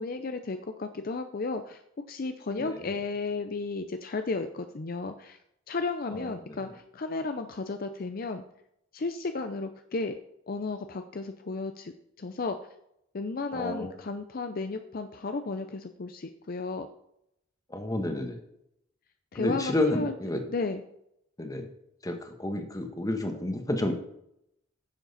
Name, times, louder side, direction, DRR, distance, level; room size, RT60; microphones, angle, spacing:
voice 1, 0.0-1.8 2.1-5.4 5.7-8.4 8.9-10.2 10.5-11.9 12.2-12.6 13.1-16.9 19.3-20.1 20.5-20.8, left 3 dB, 50° left, 8 dB, 0.5 m, -33 dB
voice 2, 6.1-6.6 13.5-13.9 17.7-18.4 19.3-20.4 21.4-21.7 22.0-23.9, left 1 dB, 20° left, 5 dB, 1.3 m, -30 dB
10.5 x 7.5 x 4.1 m, 0.77 s
head